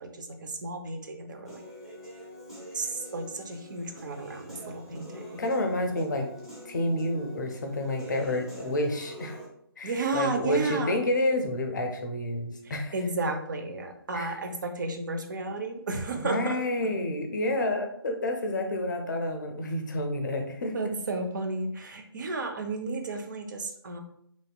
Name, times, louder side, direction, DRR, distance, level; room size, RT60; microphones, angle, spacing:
voice 1, 0.0-1.6 2.7-5.4 9.8-10.9 12.6-16.6 20.7-24.0, right 3 dB, 50° right, 5 dB, 0.5 m, -33 dB
Human voice / Piano, 1.4-9.5, right 1 dB, ahead, 0.8 m, -45 dB
voice 2, 5.4-6.3 6.6-9.4 9.8-13.0 14.1-14.4 16.2-20.9, left 1 dB, 50° left, 5 dB, 0.5 m, -29 dB
3.0 x 2.7 x 2.2 m, 0.70 s
figure-of-eight pair, 150°, 13 cm